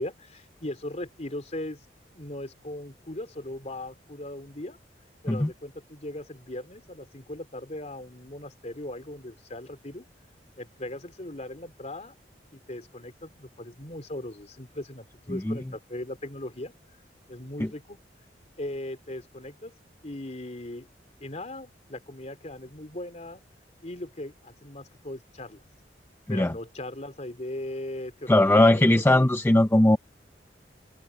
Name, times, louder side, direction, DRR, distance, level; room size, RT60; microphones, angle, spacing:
voice 1, 0.0-1.8 2.1-4.8 5.2-10.1 10.6-12.1 12.5-16.7 17.3-18.0 18.6-19.7 20.0-20.9 21.2-23.4 23.8-25.6 26.3-29.3, left 1 dB, 40° left, 3.6 m, -38 dB
voice 2, 28.3-30.0, left 1 dB, 15° left, 0.6 m, -19 dB
head